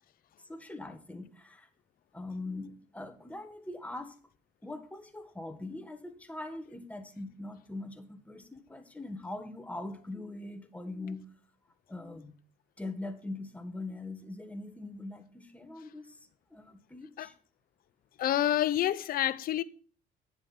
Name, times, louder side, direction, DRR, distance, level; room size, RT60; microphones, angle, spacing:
voice 1, 0.5-1.7 2.1-4.1 4.6-11.4 11.9-12.4 12.8-16.2 16.5-17.3, left 2 dB, 10° left, 1.6 m, -42 dB
voice 2, 18.2-19.6, left 12 dB, 60° left, 0.7 m, -28 dB
9.4 x 7.6 x 6.1 m
cardioid pair, 110°, 17 cm